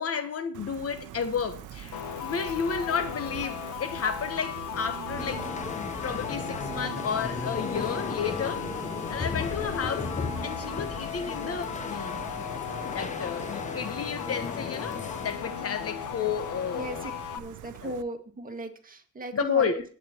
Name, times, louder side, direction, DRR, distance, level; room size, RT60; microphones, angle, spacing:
voice 1, 0.0-5.5 5.7-10.2 10.4-12.2 12.8-17.0 17.8-18.0 19.3-19.8, left 6 dB, 50° left, 1.1 m, -32 dB
Gull seagull, 0.5-18.0, right 12 dB, 80° right, 0.7 m, -43 dB
sound 1, 1.9-17.4, left 10 dB, 80° left, 1.0 m, -37 dB
sound 2, 5.2-15.6, left 4 dB, 25° left, 0.7 m, -36 dB
voice 2, 16.7-19.8, right 2 dB, 30° right, 1.9 m, -37 dB
21.0 x 8.7 x 2.9 m
cardioid pair, 90°, 30 cm